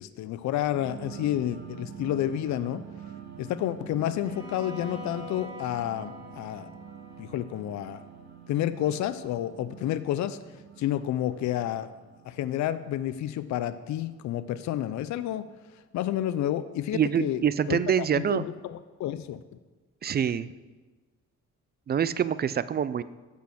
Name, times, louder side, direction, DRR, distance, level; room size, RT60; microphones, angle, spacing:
voice 1, 0.0-2.8 3.4-6.7 7.2-8.0 8.5-10.4 10.8-11.9 12.2-15.4 15.9-17.4 17.7-19.4, left 12 dB, 70° left, 13 dB, 0.5 m, -30 dB
sound 1, 0.7-14.7, right 8 dB, 60° right, 1.4 m, -46 dB
Bowed string instrument, 4.2-8.3, left 1 dB, 15° right, 2.8 m, -45 dB
voice 2, 16.9-18.4 20.0-20.5 21.9-23.0, right 8 dB, 35° right, 16 dB, 0.4 m, -25 dB
8.3 x 6.3 x 6.3 m, 1.3 s
cardioid pair, 90°, 30 cm